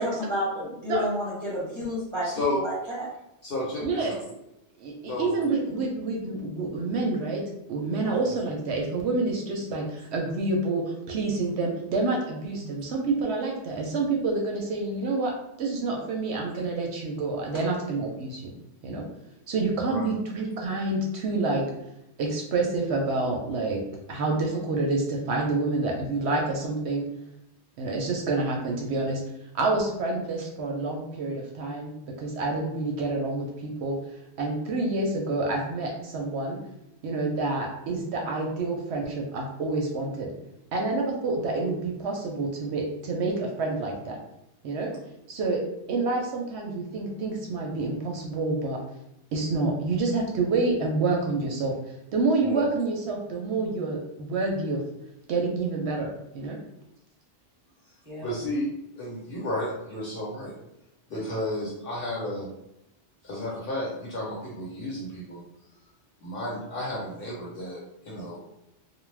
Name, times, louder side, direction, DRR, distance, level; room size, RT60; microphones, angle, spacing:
voice 1, 0.0-3.1 58.1-58.3, equal, 30° right, -7 dB, 0.7 m, -31 dB
voice 2, 2.2-2.6 3.4-4.1 5.1-5.3 9.8-10.0 12.6-12.7 19.9-20.0 52.4-52.7 58.2-58.7 59.0-60.5 61.1-62.5 63.2-65.4 66.2-68.4, left 1 dB, 50° left, -4 dB, 1.1 m, -32 dB
voice 3, 3.8-4.1 4.8-7.4 7.7-15.3 15.6-18.5 18.8-19.0 19.5-21.6 22.2-23.8 24.1-27.1 27.8-29.2 29.5-34.0 34.4-36.6 37.0-40.3 40.7-44.2 44.6-44.9 45.3-45.6 45.9-48.8 49.3-51.7 52.1-54.8 55.3-56.6, right 3 dB, 70° right, 0 dB, 0.8 m, -28 dB
2.4 x 2.1 x 3.2 m, 0.84 s
omnidirectional pair, 1.2 m